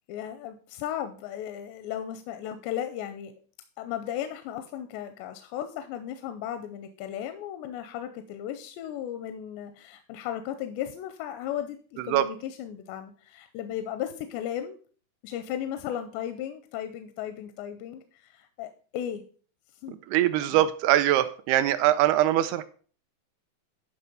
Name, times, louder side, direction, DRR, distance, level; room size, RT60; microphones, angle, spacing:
voice 1, 0.1-3.3 3.8-14.8 15.2-19.2 19.8-20.0 20.5-20.7, left 10 dB, 90° left, 8 dB, 2.8 m, -35 dB
voice 2, 20.1-22.6, right 13 dB, 80° right, 12 dB, 2.3 m, -22 dB
10.5 x 5.5 x 5.3 m, 0.43 s
omnidirectional pair, 4.9 m